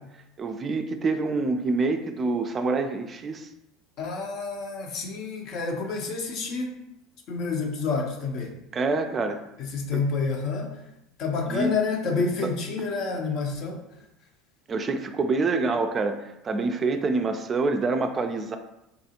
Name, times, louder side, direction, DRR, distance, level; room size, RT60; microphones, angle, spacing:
voice 1, 0.4-3.5 8.7-9.5 9.9-10.0 11.5-11.7 12.4-12.5 14.7-18.6, right 3 dB, 35° right, 7 dB, 0.3 m, -26 dB
voice 2, 4.0-6.7 7.3-8.6 9.6-10.8 11.2-13.8, left 4 dB, 55° left, 2 dB, 0.6 m, -29 dB
3.6 x 2.4 x 2.8 m, 0.87 s
hypercardioid pair, 80°, 0 cm